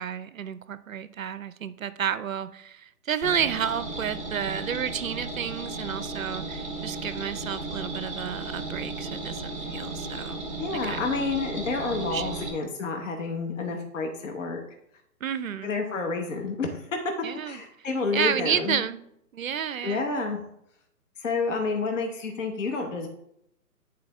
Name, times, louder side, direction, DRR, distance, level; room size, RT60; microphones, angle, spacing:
voice 1, 0.0-10.4 10.8-11.1 12.1-12.3 15.2-15.8 17.2-17.6 18.1-19.0 19.3-20.1, right 8 dB, 55° right, 14 dB, 0.5 m, -31 dB
sound 1, 3.2-12.5, right 2 dB, 10° left, 2.0 m, -35 dB
voice 2, 10.6-14.6 15.6-17.0 17.4-18.8 19.8-20.4 21.2-23.1, left 4 dB, 50° left, 3 dB, 1.0 m, -29 dB
9.4 x 4.4 x 3.6 m, 0.76 s
figure-of-eight pair, 135°, 48 cm